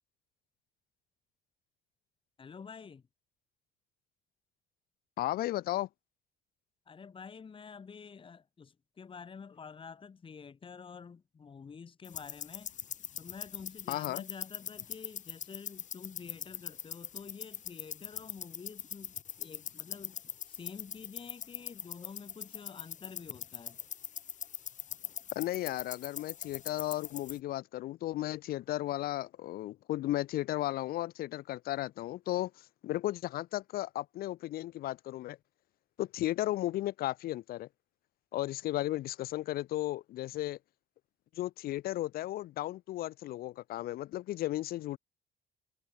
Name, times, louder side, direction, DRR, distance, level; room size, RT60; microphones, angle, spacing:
voice 1, 2.4-3.0 6.9-12.7 13.2-23.8, left 6 dB, 30° left, 2.7 m, -49 dB
voice 2, 5.2-5.9 13.9-14.2 25.4-35.4 36.0-37.7 38.3-40.6 41.4-45.0, left 15 dB, 65° left, 0.5 m, -35 dB
sound 1, 12.0-27.4, left 8 dB, 45° left, 3.5 m, -43 dB
cardioid pair, 110°, 17 cm